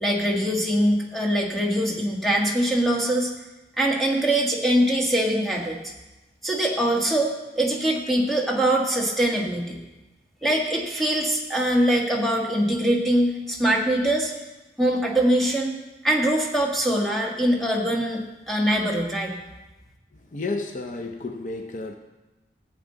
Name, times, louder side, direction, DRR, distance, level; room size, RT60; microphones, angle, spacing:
voice 1, 0.0-3.3 3.8-5.8 6.4-9.8 10.4-14.3 14.8-15.8 16.0-19.4, right 1 dB, ahead, -2 dB, 1.5 m, -23 dB
voice 2, 20.3-21.9, left 3 dB, 45° left, 4 dB, 0.6 m, -31 dB
14.5 x 8.5 x 3.9 m, 1.1 s
head